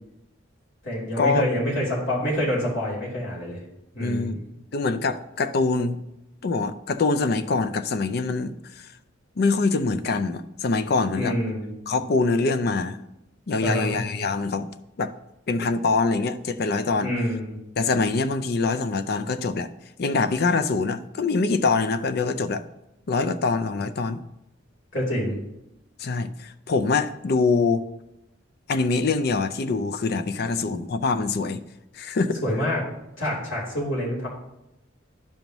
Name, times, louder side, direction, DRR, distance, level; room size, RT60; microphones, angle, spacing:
voice 1, 0.8-3.6 3.9-4.4 11.1-11.7 13.6-13.9 17.0-17.6 24.9-25.3 32.4-32.8 33.2-34.3, equal, 85° left, -5 dB, 3.2 m, -26 dB
voice 2, 4.0-4.4 4.7-6.0 6.4-8.9 9.4-11.3 11.9-13.0 13.5-14.7 15.0-15.1 15.5-17.1 17.8-19.7 20.0-22.6 23.1-24.2 26.0-27.8 28.7-31.6 31.9-32.4, left 3 dB, 55° left, 11 dB, 0.4 m, -24 dB
11.5 x 5.3 x 3.0 m, 0.89 s
head